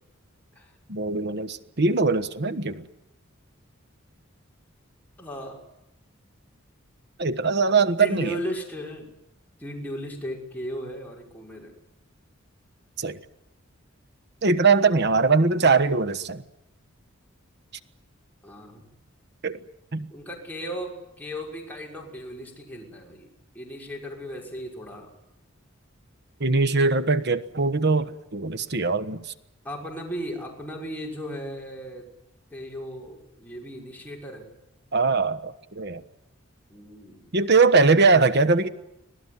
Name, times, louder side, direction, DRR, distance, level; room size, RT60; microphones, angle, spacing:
voice 1, 0.9-2.9 7.2-8.3 13.0-13.2 14.4-16.4 19.4-19.6 19.9-20.1 26.4-29.2 34.9-36.0 37.3-38.7, right 4 dB, 55° right, 1.2 m, -21 dB
voice 2, 5.2-5.6 8.0-9.1 9.6-11.8 18.4-18.8 20.1-23.3 23.5-25.1 29.6-32.1 32.5-34.5 36.7-37.3, equal, 10° left, 5.9 m, -36 dB
25.5 x 18.0 x 9.7 m
head